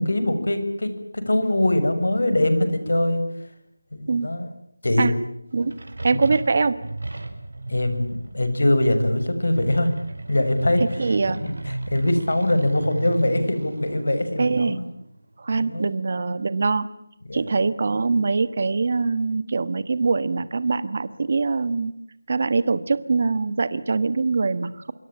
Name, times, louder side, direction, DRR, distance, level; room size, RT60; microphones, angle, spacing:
voice 1, 0.0-3.2 3.9-4.5 4.8-5.1 6.1-6.2 7.7-9.9 10.3-14.9 15.5-15.9 17.3-17.4, left 1 dB, 70° left, 10 dB, 6.7 m, -23 dB
sound 1, 5.5-15.9, right 2 dB, 65° right, 4.9 m, -36 dB
voice 2, 6.0-6.8 11.0-11.4 14.4-14.8 15.4-16.9 17.3-21.9 22.3-24.9, right 4 dB, 30° right, 15 dB, 1.3 m, -23 dB
26.0 x 23.5 x 8.9 m, 0.75 s
figure-of-eight pair, 180°, 0 cm